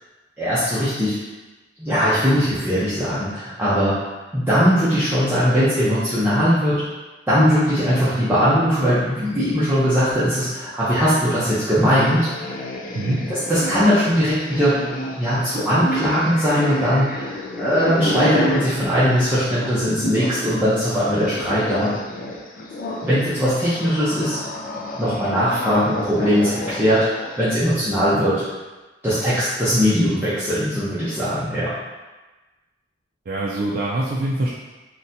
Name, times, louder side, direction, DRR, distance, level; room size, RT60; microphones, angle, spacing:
voice 1, 0.4-1.2 1.8-4.0 4.3-6.8 7.3-12.5 13.0-14.8 15.2-21.9 23.0-24.4 25.0-28.4 29.0-31.7, equal, 10° right, -13 dB, 0.6 m, -20 dB
sound 1, 11.7-20.4 20.7-27.5, left 1 dB, 50° left, 0.4 m, -30 dB
voice 2, 12.9-13.3 33.3-34.5, right 1 dB, 50° right, -5 dB, 0.4 m, -24 dB
4.0 x 2.2 x 2.6 m, 1.2 s
head